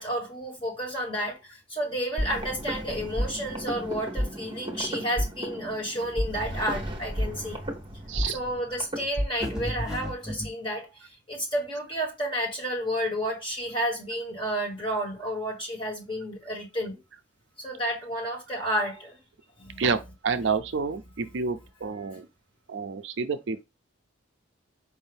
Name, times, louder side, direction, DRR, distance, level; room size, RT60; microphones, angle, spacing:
voice 1, 0.0-7.6 8.3-10.9 11.3-17.0 17.6-19.2 19.6-19.8, equal, 25° left, 1.6 m, -31 dB
sound 1, 2.2-9.7, equal, 25° right, 0.9 m, -32 dB
voice 2, 8.1-8.4 19.8-20.0 20.2-22.3 22.7-23.6, right 5 dB, 65° right, 0.5 m, -29 dB
sound 2, 9.4-10.5, equal, 5° right, 1.2 m, -33 dB
4.8 x 2.7 x 3.4 m
head